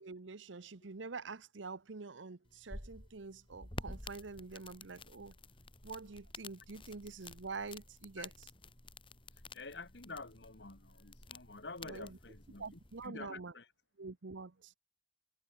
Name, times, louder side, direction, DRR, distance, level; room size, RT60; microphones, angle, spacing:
voice 1, 0.0-5.3 5.8-8.3 11.8-12.2 12.6-13.5 14.0-14.7, right 4 dB, 85° right, 0.9 m, -46 dB
sound 1, 2.5-13.1, left 2 dB, 30° left, 4.3 m, -51 dB
voice 2, 9.5-13.7, left 3 dB, 65° left, 2.4 m, -49 dB
head